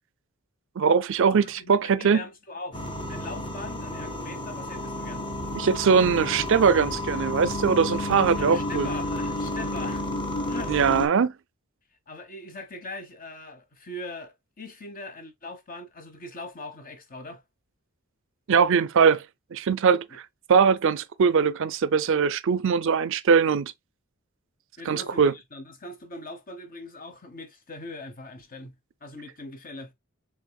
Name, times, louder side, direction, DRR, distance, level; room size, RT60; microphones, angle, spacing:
voice 1, 0.8-2.2 5.5-8.9 10.7-11.3 18.5-19.2 19.5-20.2 20.5-23.7 24.9-25.3, right 6 dB, 60° right, 0.5 m, -21 dB
voice 2, 1.3-5.3 8.4-10.0 10.5-10.7 12.1-17.4 24.8-29.9, left 2 dB, 40° left, 1.2 m, -41 dB
sound 1, 2.7-11.1, left 1 dB, 25° left, 1.2 m, -31 dB
6.3 x 3.7 x 2.3 m
head